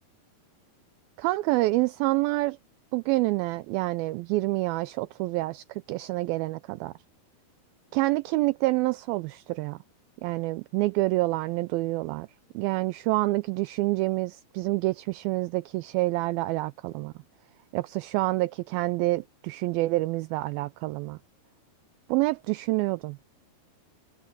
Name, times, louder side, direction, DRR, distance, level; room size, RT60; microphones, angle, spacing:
voice 1, 1.2-2.6 2.9-6.9 7.9-9.8 10.2-12.3 12.6-17.1 17.7-21.2 22.1-23.2, right 20 dB, 80° right, 2.2 m, -27 dB
omnidirectional pair, 4.5 m